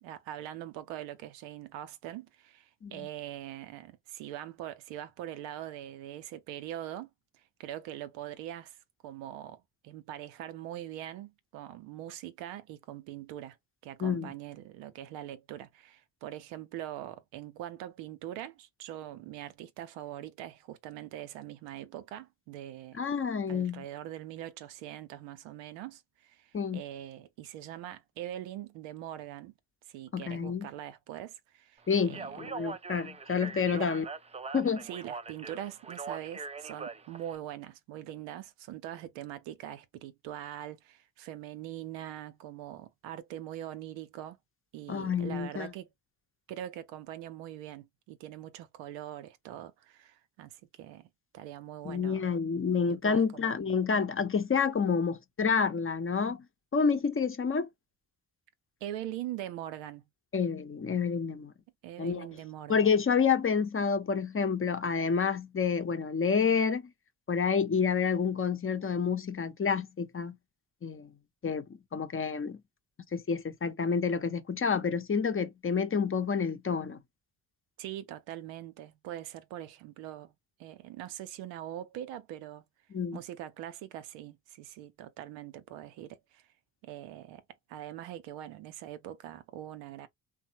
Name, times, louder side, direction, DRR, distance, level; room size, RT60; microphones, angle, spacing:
voice 1, 0.0-13.6 13.8-23.1 23.5-29.5 29.9-32.5 33.7-33.9 34.8-44.4 44.7-45.9 46.5-51.1 51.3-52.3 52.9-53.5 58.8-60.1 61.8-62.9 77.8-80.3 80.6-82.6 83.1-86.5 86.8-87.4 87.7-90.1, right 12 dB, 90° right, 0.6 m, -42 dB
voice 2, 14.0-14.3 22.9-23.8 26.5-26.8 30.1-30.7 31.9-34.0 34.5-34.9 44.9-45.7 51.8-56.4 56.7-57.7 60.3-61.5 62.0-62.3 62.7-66.8 67.3-70.4 70.8-71.1 71.4-71.6 71.9-72.6 73.1-77.0 82.9-83.2, left 6 dB, 30° left, 0.7 m, -29 dB
Speech, 32.0-37.4, right 4 dB, 15° right, 0.4 m, -42 dB
3.2 x 2.0 x 2.8 m
supercardioid pair, 50°, 43 cm